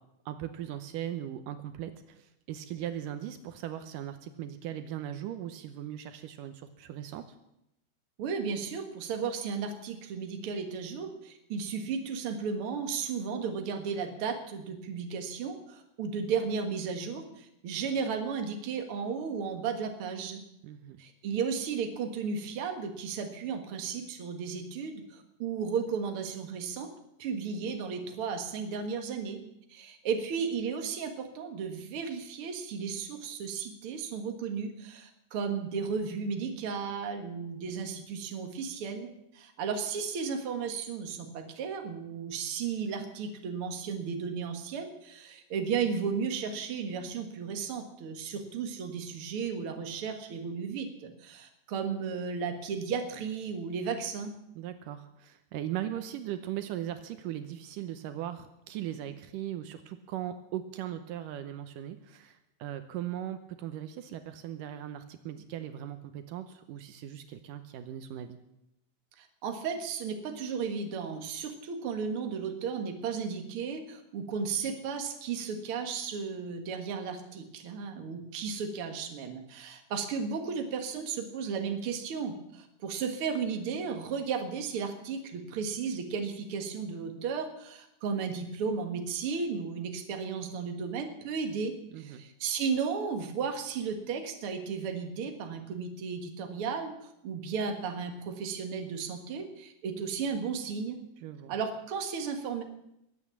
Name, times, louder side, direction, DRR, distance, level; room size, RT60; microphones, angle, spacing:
voice 1, 0.3-7.2 20.6-21.0 54.6-68.4 91.9-92.2 101.2-101.5, right 11 dB, 80° right, 9 dB, 2.4 m, -39 dB
voice 2, 8.2-20.4 21.0-26.9 27.2-29.4 29.7-54.4 69.2-101.0 101.5-102.6, right 6 dB, 50° right, 5 dB, 2.1 m, -34 dB
21.5 x 8.5 x 7.3 m, 0.83 s
omnidirectional pair, 3.9 m